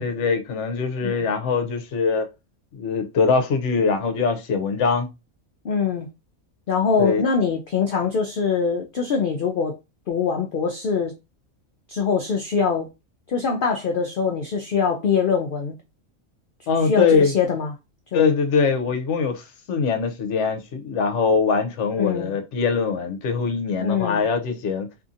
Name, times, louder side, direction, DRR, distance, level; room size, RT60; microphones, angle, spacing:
voice 1, 0.0-2.3 2.8-5.1 7.0-7.2 16.7-17.3 18.1-24.9, left 5 dB, 65° left, 0.9 m, -22 dB
voice 2, 5.6-6.1 6.7-9.7 10.1-11.1 11.9-12.9 13.3-15.8 16.8-17.7 18.1-18.3 22.0-22.3 23.8-24.2, left 6 dB, 85° left, 0.4 m, -23 dB
2.7 x 2.6 x 2.5 m
omnidirectional pair, 1.5 m